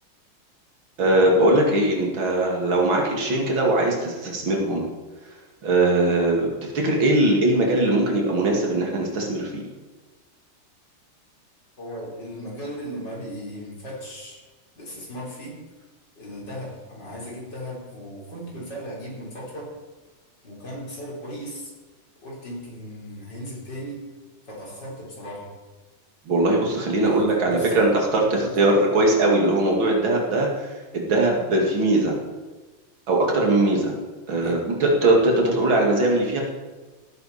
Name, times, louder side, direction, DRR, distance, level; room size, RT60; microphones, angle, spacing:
voice 1, 1.0-4.9 5.6-9.6 26.3-27.9 28.3-30.5 30.9-32.2 33.1-34.0 34.3-36.4, right 2 dB, 70° right, -1 dB, 3.0 m, -20 dB
voice 2, 11.8-14.4 14.8-15.6 16.1-19.8 20.4-21.7 22.2-24.1 24.4-25.5 27.0-28.0 28.3-28.9 34.4-34.5, equal, 55° left, -4 dB, 4.9 m, -37 dB
17.0 x 10.0 x 4.3 m, 1.3 s
omnidirectional pair, 2.3 m